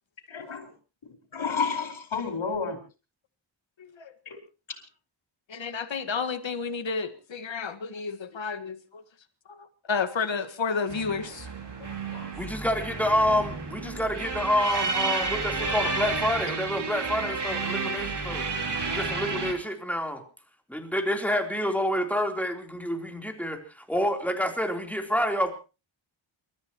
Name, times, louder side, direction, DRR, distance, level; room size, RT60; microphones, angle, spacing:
voice 1, 0.3-0.7 1.0-2.8 4.2-4.4 12.1-12.3, left 5 dB, 90° left, 3 dB, 4.9 m, -31 dB
voice 2, 5.5-8.8 9.9-11.5, left 5 dB, 70° left, 9 dB, 1.8 m, -30 dB
sound 1, 10.9-19.5, right 4 dB, 60° right, 3.2 m, -31 dB
voice 3, 12.4-18.4 18.9-20.2 20.7-25.5, left 1 dB, 5° left, 3 dB, 3.7 m, -28 dB
29.5 x 14.0 x 3.1 m, 0.32 s
wide cardioid pair, 75°, 46 cm